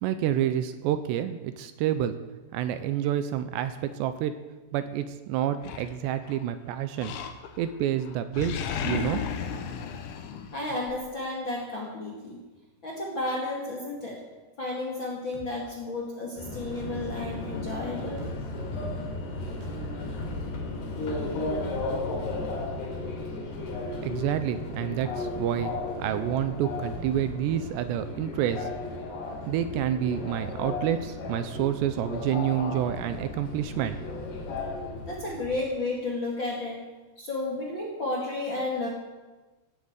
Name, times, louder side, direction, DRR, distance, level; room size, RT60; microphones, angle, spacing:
voice 1, 0.0-2.2 2.5-4.4 4.7-7.1 7.6-9.2 24.0-25.7 26.0-28.7 29.5-34.0, right 10 dB, 80° right, 11 dB, 2.8 m, -28 dB
Animal, 5.6-6.5 7.0-7.7 8.0-11.0, left 7 dB, 80° left, 3.5 m, -34 dB
voice 2, 10.5-12.4 12.8-14.2 14.6-18.2 35.0-36.8 37.2-38.9, left 2 dB, 40° left, -2 dB, 2.0 m, -32 dB
sound 1, 15.3-15.5 16.8-17.0 18.2-18.4 19.6-19.8 21.0-21.2, right 2 dB, 65° right, 3.6 m, -45 dB
Subway metro underground, 16.4-35.6, left 2 dB, 60° left, 4.4 m, -35 dB
16.0 x 9.1 x 8.1 m, 1.2 s
omnidirectional pair, 5.3 m